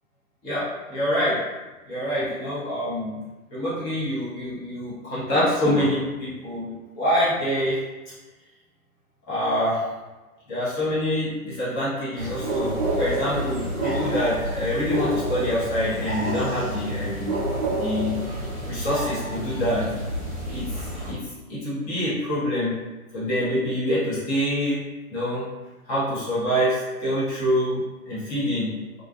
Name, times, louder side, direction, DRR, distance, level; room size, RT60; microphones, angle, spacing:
voice 1, 0.4-1.4 1.9-3.2 3.5-7.8 9.3-9.8 10.5-17.3 17.7-18.2 18.7-19.9 20.4-22.8 23.1-24.8 25.1-25.4 25.9-29.0, equal, 15° left, -10 dB, 0.7 m, -26 dB
sound 1, 12.1-21.1, right 1 dB, 25° right, 0.5 m, -28 dB
2.5 x 2.3 x 2.3 m, 1.2 s
figure-of-eight pair, 130°, 44 cm